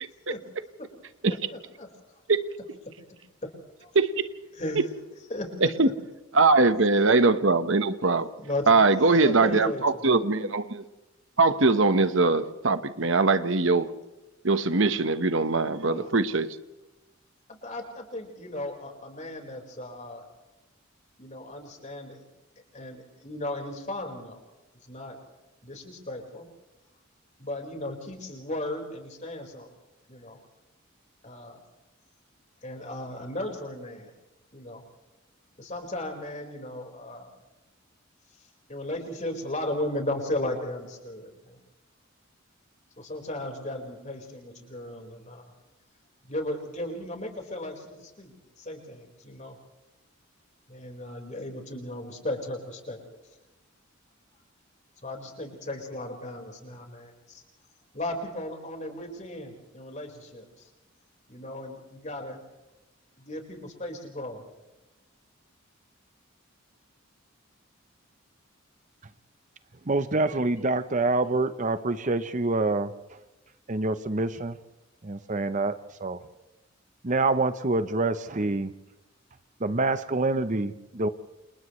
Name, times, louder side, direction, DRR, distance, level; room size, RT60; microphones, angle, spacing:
voice 1, 3.9-4.3 4.7-4.8 5.6-5.9 6.3-8.3 8.7-10.8 11.4-13.9 14.4-16.5, right 3 dB, 65° right, 10 dB, 1.2 m, -22 dB
voice 2, 5.3-5.7 8.4-8.8 9.2-10.2 15.9-16.1 17.5-20.2 21.2-22.2 22.7-24.4 24.9-25.2 25.6-26.5 27.4-29.7 30.1-30.4 31.2-31.6 32.6-34.1 34.5-34.8 35.6-37.3 38.7-41.6 43.0-45.4 46.3-49.6 50.7-53.0 55.0-57.4 57.9-60.6 61.3-62.4 63.2-64.4, left 1 dB, 35° left, 2 dB, 4.8 m, -36 dB
voice 3, 69.9-73.2 73.7-74.6 75.0-76.2 77.0-78.7 79.6-81.1, right 2 dB, 35° right, 11 dB, 0.8 m, -26 dB
29.5 x 28.5 x 3.2 m, 1.0 s
head